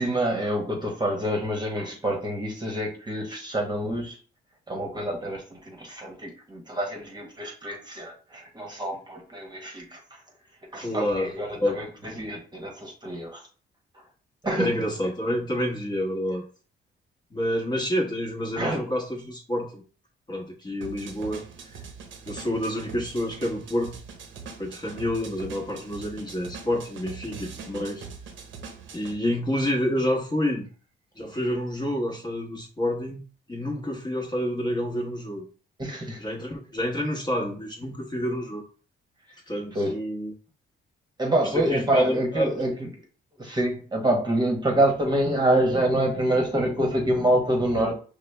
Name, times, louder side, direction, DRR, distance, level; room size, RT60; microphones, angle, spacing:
voice 1, 0.0-4.2 4.7-10.2 10.7-11.9 12.2-13.4 14.4-14.8 18.6-18.8 35.8-36.2 39.7-40.0 41.2-42.9 43.4-48.0, right 1 dB, 20° right, 1.1 m, -26 dB
voice 2, 10.8-11.8 14.6-16.4 17.3-19.8 20.3-21.4 22.3-24.0 24.6-28.1 28.9-30.7 31.2-33.2 33.5-35.4 36.2-38.6 39.5-40.3 41.4-42.7, equal, 20° left, 1.1 m, -28 dB
sound 1, 20.8-29.2, right 5 dB, 75° right, 0.8 m, -42 dB
4.9 x 2.1 x 3.3 m
cardioid pair, 90°, 20 cm